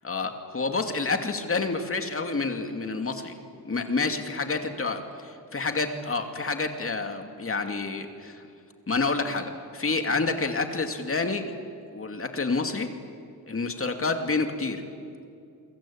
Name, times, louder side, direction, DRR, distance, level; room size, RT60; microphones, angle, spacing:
voice 1, 0.0-3.3 3.6-8.5 8.9-11.4 11.9-12.9 13.5-14.8, left 3 dB, 35° left, 5 dB, 2.5 m, -28 dB
29.5 x 22.5 x 8.7 m, 2.4 s
wide cardioid pair, 110°, 38 cm